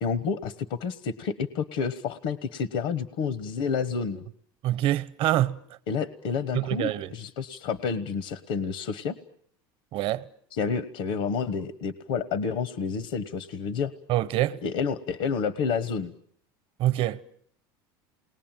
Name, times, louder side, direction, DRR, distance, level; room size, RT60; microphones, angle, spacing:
voice 1, 0.0-4.3 5.9-9.1 10.5-13.9 14.6-16.1, left 5 dB, 70° left, 1.2 m, -29 dB
voice 2, 4.6-5.6 6.5-7.1 9.9-10.3 14.1-14.6 16.8-17.2, right 14 dB, 55° right, 1.0 m, -25 dB
28.5 x 20.5 x 9.1 m
supercardioid pair, 120°, 11 cm